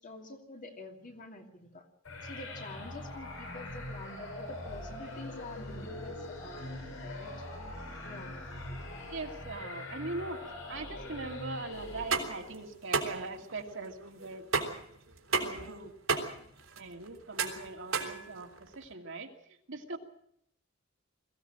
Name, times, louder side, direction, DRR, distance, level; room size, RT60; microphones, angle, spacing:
voice 1, 0.0-1.9 2.2-7.3 8.0-8.5, left 2 dB, 40° left, 3 dB, 2.8 m, -47 dB
sound 1, 2.0-12.6, left 1 dB, 75° left, 6.6 m, -42 dB
voice 2, 9.1-10.4 10.7-14.5 15.3-15.9 16.8-19.3 19.7-20.0, right 3 dB, 65° right, 3 dB, 2.3 m, -41 dB
sound 2, 11.9-18.8, right 4 dB, 80° right, 3.3 m, -34 dB
22.0 x 15.5 x 7.6 m, 0.71 s
head